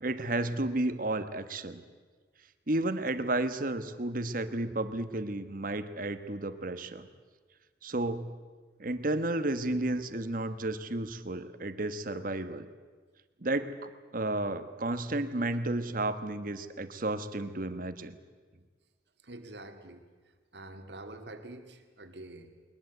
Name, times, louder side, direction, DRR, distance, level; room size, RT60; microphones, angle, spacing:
voice 1, 0.0-1.8 2.7-7.1 7.8-8.3 8.8-12.7 13.4-18.2, right 2 dB, 50° right, 10 dB, 1.3 m, -32 dB
voice 2, 19.2-20.0 20.5-22.7, right 2 dB, 70° right, 6 dB, 2.1 m, -46 dB
21.5 x 21.0 x 8.0 m, 1.5 s
head